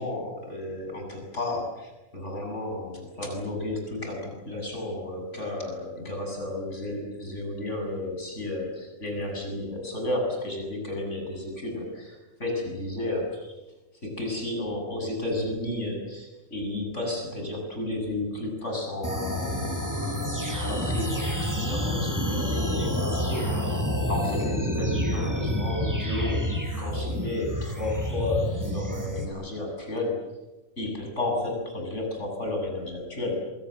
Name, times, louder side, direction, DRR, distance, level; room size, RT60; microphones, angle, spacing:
voice 1, 0.0-13.5 14.0-26.5 26.8-30.3 30.8-33.5, left 2 dB, 55° left, 1 dB, 7.9 m, -32 dB
sound 1, 19.0-29.3, equal, 10° right, 5.9 m, -28 dB
28.0 x 24.0 x 7.8 m, 1.1 s
omnidirectional pair, 1.4 m